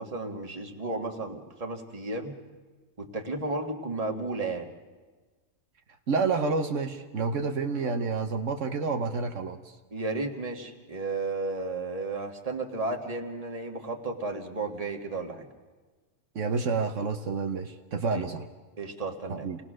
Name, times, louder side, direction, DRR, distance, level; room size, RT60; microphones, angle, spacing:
voice 1, 0.0-2.3 3.0-4.7 9.9-15.4 18.1-18.3 18.8-19.5, right 3 dB, 30° right, 3 dB, 1.7 m, -33 dB
voice 2, 6.1-9.7 16.3-18.5 19.3-19.6, right 4 dB, 70° right, 5 dB, 1.3 m, -29 dB
28.0 x 18.5 x 6.3 m, 1.3 s
omnidirectional pair, 1.3 m